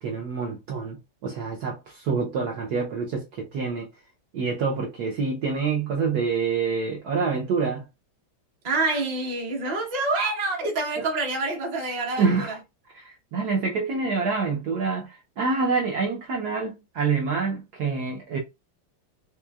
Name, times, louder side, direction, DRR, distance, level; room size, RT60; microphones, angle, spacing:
voice 1, 0.0-3.9 4.3-7.8 11.0-11.1 12.2-12.5 12.9-18.4, right 5 dB, 65° right, 1.0 m, -27 dB
voice 2, 8.6-12.5, right 3 dB, 30° right, 0.8 m, -27 dB
4.4 x 3.0 x 2.3 m
omnidirectional pair, 2.2 m